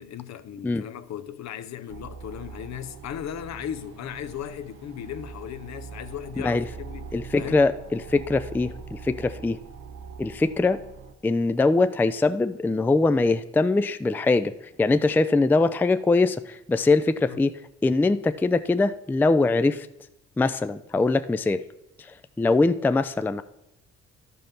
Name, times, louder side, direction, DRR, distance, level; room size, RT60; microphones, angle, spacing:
voice 1, 0.0-7.6 17.3-17.4, left 10 dB, 65° left, 0.7 m, -37 dB
sound 1, 1.9-11.1, right 5 dB, 90° right, 0.9 m, -42 dB
voice 2, 6.4-6.7 7.1-9.6 10.2-10.8 11.2-14.5 14.8-17.5 17.8-19.9 20.4-21.6 22.0-23.4, left 3 dB, 5° left, 0.3 m, -22 dB
12.0 x 5.5 x 5.8 m
cardioid pair, 90°, 30 cm